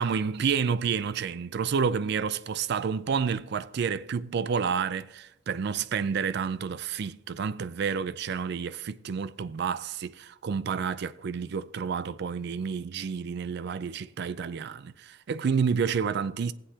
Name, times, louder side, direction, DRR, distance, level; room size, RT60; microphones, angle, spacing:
voice 1, 0.0-16.5, right 6 dB, 60° right, 0.4 m, -29 dB
20.0 x 7.8 x 2.8 m
head